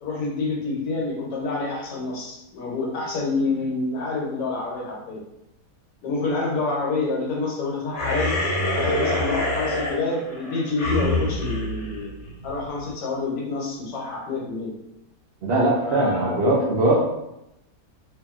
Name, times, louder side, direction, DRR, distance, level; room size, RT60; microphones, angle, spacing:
voice 1, 0.0-5.2 6.0-8.3 8.7-12.1 12.4-14.7 15.8-16.8, left 3 dB, 80° left, -3 dB, 1.4 m, -27 dB
sound 1, 7.9-12.7, left 1 dB, 50° left, 1.0 m, -26 dB
voice 2, 15.4-17.0, right 2 dB, 85° right, -5 dB, 0.5 m, -21 dB
2.7 x 2.7 x 2.3 m, 0.87 s
omnidirectional pair, 1.8 m